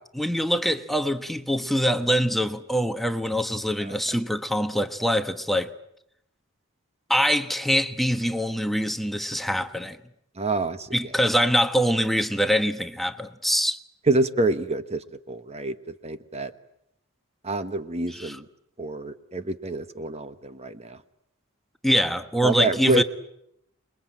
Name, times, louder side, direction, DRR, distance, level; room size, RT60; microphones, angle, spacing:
voice 1, 0.2-5.7 7.1-10.0 10.9-13.8 18.1-18.4 21.8-23.0, equal, ahead, 1.1 m, -24 dB
voice 2, 10.4-10.9 14.1-15.8 16.0-16.5 17.4-18.4 18.8-21.0 22.4-23.0, right 2 dB, 30° right, 1.1 m, -26 dB
28.0 x 21.5 x 8.9 m
head